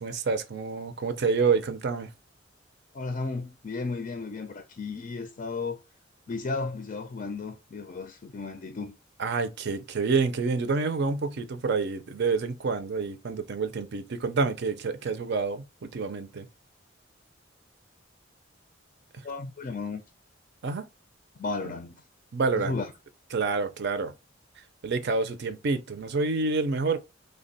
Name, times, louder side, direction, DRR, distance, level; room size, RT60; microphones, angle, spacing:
voice 1, 0.0-2.1 9.2-16.5 20.6-20.8 21.6-21.7 22.3-22.8 23.3-24.1 24.8-27.0, right 4 dB, 60° right, 0.5 m, -28 dB
voice 2, 2.9-5.8 6.3-9.0 19.2-20.0 21.4-22.0 22.6-22.9, left 3 dB, 40° left, 0.4 m, -34 dB
3.3 x 2.2 x 3.9 m
head